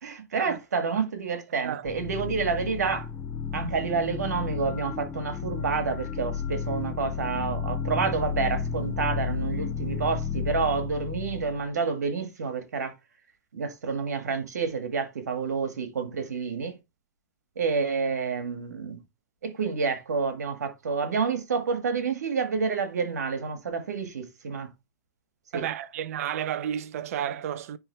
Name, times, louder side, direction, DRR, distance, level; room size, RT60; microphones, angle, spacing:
voice 1, 0.0-3.1 3.5-13.0 13.5-16.8 17.6-19.0 19.4-24.7 25.5-25.7, right 5 dB, 70° right, 1.9 m, -29 dB
sound 1, 1.8-11.7, left 6 dB, 20° left, 0.5 m, -32 dB
voice 2, 25.5-27.8, right 10 dB, 55° right, 0.7 m, -32 dB
9.8 x 3.6 x 3.4 m
hypercardioid pair, 115°, 9 cm